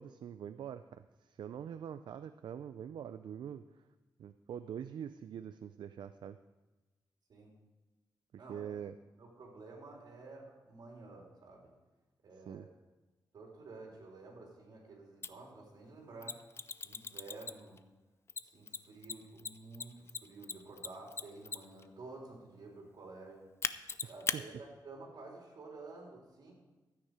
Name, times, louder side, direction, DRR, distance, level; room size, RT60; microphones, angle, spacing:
voice 1, 0.0-3.6 4.2-6.4 8.5-8.9 12.5-12.7 24.3-24.4, right 8 dB, 80° right, 11 dB, 0.4 m, -44 dB
voice 2, 8.4-8.7 9.2-11.7 12.2-12.7 13.3-16.4 16.8-17.8 18.4-23.5 24.1-26.5, right 3 dB, 65° right, -2 dB, 3.9 m, -51 dB
Mechanisms, 15.2-15.3 16.2-17.8 18.3-21.8 23.6-24.4, left 5 dB, 35° left, 0.5 m, -38 dB
13.5 x 9.3 x 4.9 m, 1.2 s
wide cardioid pair, 120°, 8 cm